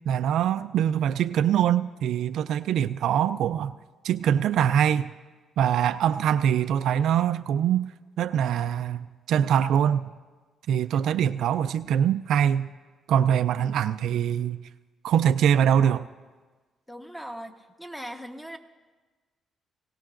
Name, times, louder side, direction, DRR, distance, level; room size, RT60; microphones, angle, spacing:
voice 1, 0.1-3.7 4.0-5.1 5.6-7.9 8.2-10.1 10.7-12.7 13.1-14.6 15.0-16.1, right 9 dB, 75° right, 11 dB, 0.4 m, -23 dB
voice 2, 16.9-18.6, equal, 5° left, 4 dB, 1.1 m, -39 dB
20.0 x 17.5 x 2.5 m, 1.3 s
cardioid pair, 90°, 0 cm